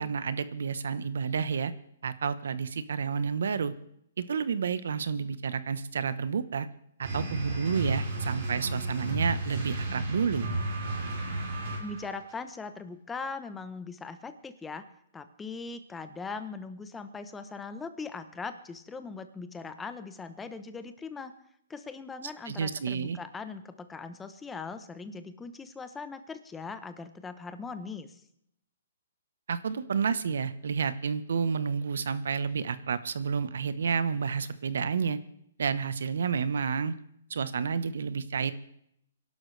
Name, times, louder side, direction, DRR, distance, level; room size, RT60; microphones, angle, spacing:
voice 1, 0.0-1.7 2.0-3.7 4.2-6.7 7.0-10.5 22.5-23.2 29.5-35.2 35.6-36.9 37.3-38.5, right 6 dB, 75° right, 14 dB, 1.0 m, -30 dB
sound 1, 7.0-12.2, right 2 dB, 45° right, 5.3 m, -33 dB
voice 2, 11.8-14.9 15.1-21.3 21.7-28.2, left 4 dB, 10° left, 10 dB, 0.8 m, -40 dB
23.5 x 11.5 x 3.3 m, 0.72 s
hypercardioid pair, 165°, 0 cm